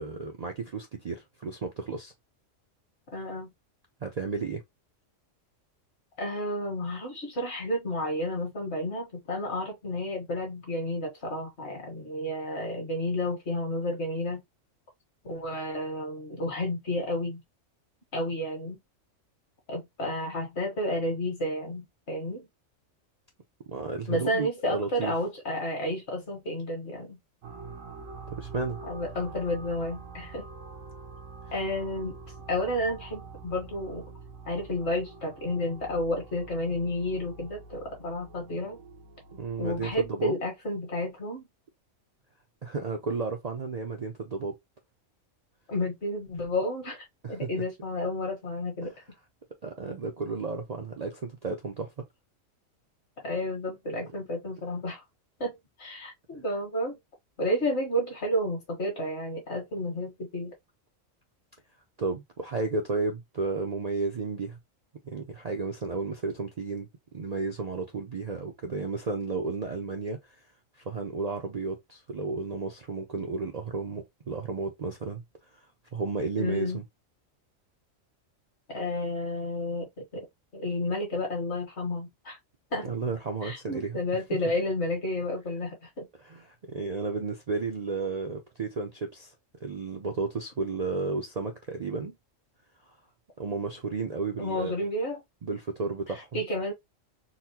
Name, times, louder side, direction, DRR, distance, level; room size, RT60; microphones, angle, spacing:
voice 1, 0.0-2.1 4.0-4.6 23.7-25.1 28.4-28.8 39.3-40.3 42.6-44.6 47.2-47.6 48.8-48.9 49.6-51.9 62.0-64.6 65.0-66.9 67.1-70.4 70.9-75.2 75.9-76.8 82.8-84.0 86.2-89.3 89.6-92.2 93.4-94.7 95.4-96.4, right 4 dB, 45° right, 0.5 m, -33 dB
voice 2, 3.1-3.5 6.2-14.4 15.2-17.4 18.1-18.8 19.7-22.5 24.1-27.2 28.8-30.5 31.5-32.2 32.5-34.0 34.5-38.8 39.6-41.5 45.7-48.9 53.2-55.0 55.4-57.0 57.4-60.5 76.4-76.8 78.7-80.3 80.5-82.4 82.7-83.0 83.4-86.1 94.4-95.2 96.3-96.7, left 1 dB, 60° left, 1.6 m, -31 dB
sound 1, 27.4-40.1, right 4 dB, 80° right, 1.2 m, -45 dB
4.0 x 2.1 x 2.8 m
omnidirectional pair, 1.3 m